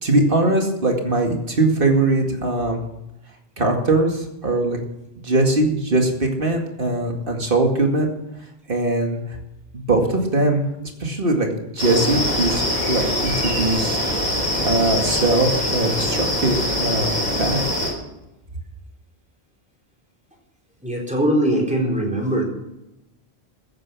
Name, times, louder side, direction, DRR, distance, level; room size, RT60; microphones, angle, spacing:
voice 1, 0.0-2.8 3.6-4.8 5.2-8.1 8.7-9.2 9.7-10.6 11.0-11.5 11.7-14.0 14.6-17.6, right 2 dB, 60° right, 2 dB, 2.4 m, -21 dB
sound 1, 11.8-17.9, left 1 dB, 50° left, 4.7 m, -23 dB
voice 2, 20.8-22.4, right 1 dB, 5° right, -1 dB, 4.2 m, -21 dB
15.5 x 9.4 x 6.1 m, 0.90 s
omnidirectional pair, 1.1 m